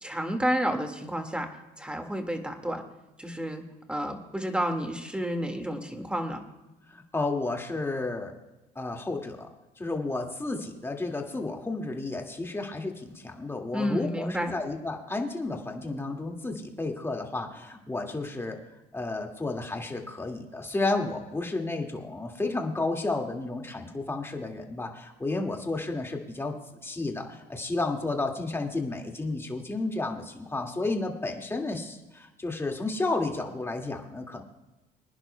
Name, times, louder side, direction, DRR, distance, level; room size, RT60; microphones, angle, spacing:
voice 1, 0.0-1.5 1.8-2.8 3.2-3.6 3.9-6.4 13.7-14.5, equal, 5° right, 5 dB, 1.8 m, -30 dB
voice 2, 6.9-8.3 8.8-9.5 9.8-18.6 18.9-26.6 26.8-34.4, left 2 dB, 15° left, 2 dB, 2.0 m, -32 dB
25.0 x 10.5 x 2.2 m, 1.0 s
cardioid pair, 110°, 17 cm